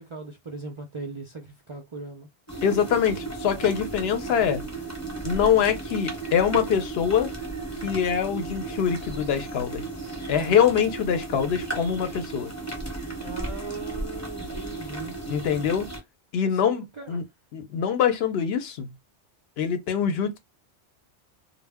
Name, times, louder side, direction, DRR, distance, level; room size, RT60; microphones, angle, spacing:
voice 1, 0.0-2.3 10.3-10.6 13.2-15.2 16.5-17.2, right 3 dB, 50° right, 0.3 m, -39 dB
sound 1, 2.5-16.0, right 3 dB, 15° left, 0.7 m, -35 dB
voice 2, 2.6-4.6 5.2-7.3 7.8-9.9 10.3-12.5 15.3-15.9 16.3-17.2 17.5-18.9 19.6-20.4, left 8 dB, 70° left, 0.8 m, -24 dB
2.1 x 2.0 x 3.4 m
omnidirectional pair, 1.1 m